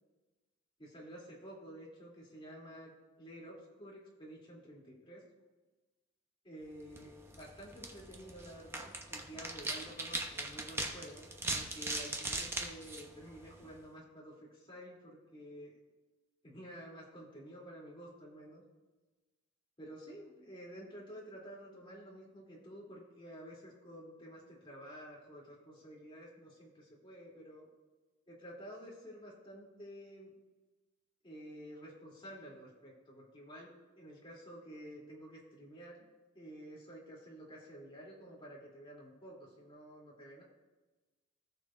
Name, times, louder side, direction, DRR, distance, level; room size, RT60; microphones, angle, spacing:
voice 1, 0.8-2.9 3.2-5.2 6.4-15.7 16.4-18.6 19.8-27.7 28.3-30.3 31.2-36.1 36.3-40.4, equal, 25° left, -5 dB, 3.0 m, -51 dB
sound 1, 6.8-13.8, right 2 dB, 10° right, 0.8 m, -41 dB
18.0 x 6.9 x 2.6 m, 1.2 s
head